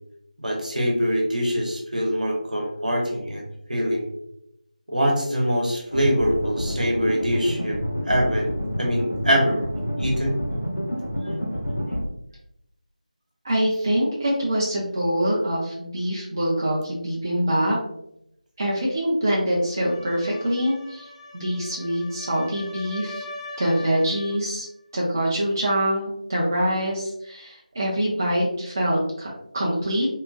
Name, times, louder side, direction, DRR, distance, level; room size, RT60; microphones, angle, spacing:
voice 1, 0.4-4.1 4.9-7.8 8.1-9.7 10.0-10.4, equal, 70° right, 0 dB, 0.9 m, -24 dB
sound 1, 5.9-12.0, equal, 90° left, 0.7 m, -28 dB
voice 2, 13.4-17.8 18.6-21.1 21.3-23.2 23.6-24.7 24.9-30.1, equal, 25° right, -4 dB, 0.4 m, -24 dB
sound 2, 19.6-24.5, left 2 dB, 45° left, 0.5 m, -41 dB
2.8 x 2.3 x 2.3 m, 0.78 s
figure-of-eight pair, 165°, 4 cm